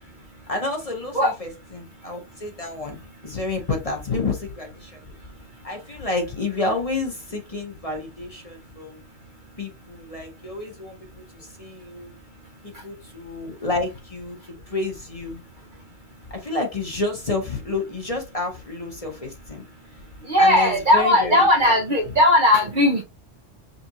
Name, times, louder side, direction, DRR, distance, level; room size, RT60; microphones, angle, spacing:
voice 1, 0.5-5.0 5.6-9.0 9.6-12.1 12.6-15.4 16.3-19.6 20.4-21.7, left 2 dB, 30° left, 1.1 m, -30 dB
voice 2, 20.3-23.0, left 1 dB, 50° right, 0.8 m, -17 dB
5.4 x 2.5 x 2.8 m
omnidirectional pair, 1.3 m